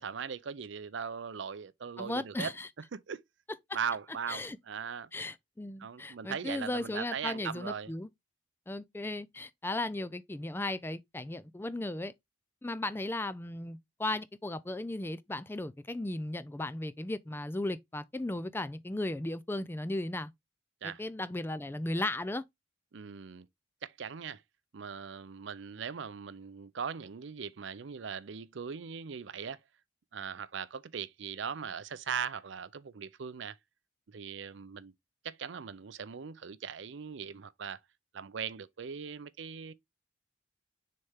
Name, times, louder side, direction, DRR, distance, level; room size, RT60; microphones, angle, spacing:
voice 1, 0.0-2.5 2.9-3.2 3.7-5.1 5.8-7.9 20.8-21.0 22.9-23.5 23.8-24.4 24.7-29.6 30.1-33.6 34.1-34.9 35.2-37.8 38.1-39.7, right 6 dB, 65° right, 0.5 m, -39 dB
voice 2, 2.0-2.7 4.3-4.6 5.1-8.1 8.7-12.1 12.6-20.3 20.8-22.4, left 2 dB, 10° left, 0.3 m, -36 dB
6.6 x 4.2 x 3.5 m
head